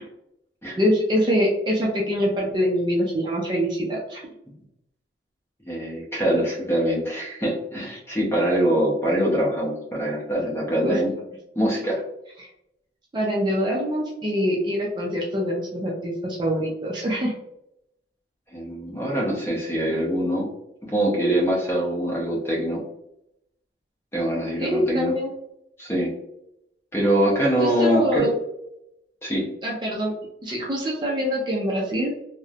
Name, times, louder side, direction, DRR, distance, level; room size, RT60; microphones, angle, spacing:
voice 1, 0.8-4.2 10.8-11.0 12.4-12.5 13.1-17.3 24.6-25.3 27.6-28.3 29.6-30.1 30.4-32.1, equal, 25° right, -3 dB, 0.4 m, -24 dB
voice 2, 5.7-11.1 11.6-12.0 18.5-20.5 20.9-22.8 24.1-25.1 25.8-26.1 26.9-28.3 29.2-29.5, right 1 dB, 15° left, -3 dB, 0.6 m, -23 dB
2.9 x 2.0 x 2.4 m, 0.81 s
head